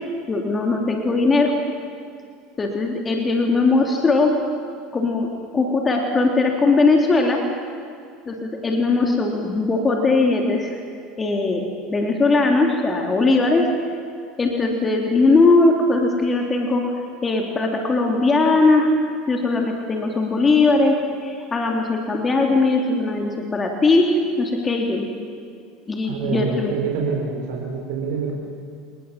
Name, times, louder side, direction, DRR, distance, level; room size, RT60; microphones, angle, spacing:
voice 1, 0.3-1.5 2.6-4.3 4.9-7.4 8.3-10.8 11.2-13.7 14.4-18.9 19.3-25.0 25.9-26.7, left 3 dB, 25° left, 1 dB, 3.2 m, -19 dB
voice 2, 26.0-28.4, right 5 dB, 75° right, 0 dB, 5.2 m, -26 dB
28.5 x 19.5 x 7.5 m, 2.4 s
supercardioid pair, 100°, 0 cm